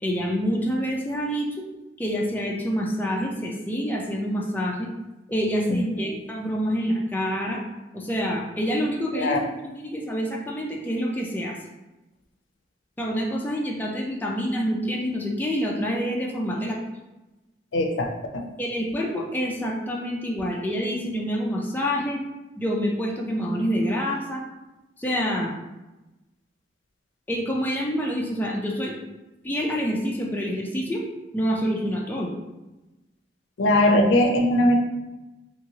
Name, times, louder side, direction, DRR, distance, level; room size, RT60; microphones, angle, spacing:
voice 1, 0.0-1.5 2.0-4.9 5.3-7.6 7.9-11.6 13.0-16.8 18.6-22.2 22.6-24.4 25.0-25.5 27.3-29.0 29.4-31.0 31.3-32.3, equal, 10° left, -2 dB, 0.4 m, -27 dB
voice 2, 9.1-9.5 17.7-18.5 33.6-34.7, left 1 dB, 90° left, 3 dB, 0.4 m, -20 dB
2.9 x 2.8 x 2.7 m, 1.0 s
head